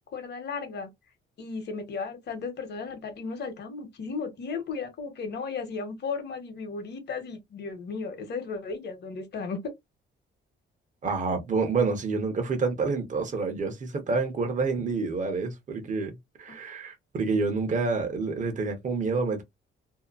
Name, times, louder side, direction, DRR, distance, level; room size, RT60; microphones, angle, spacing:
voice 1, 0.1-0.9 1.4-9.7, left 4 dB, 55° left, 1.1 m, -35 dB
voice 2, 11.0-19.4, right 4 dB, 40° right, 0.9 m, -28 dB
2.8 x 2.1 x 2.4 m
cardioid pair, 105°, 21 cm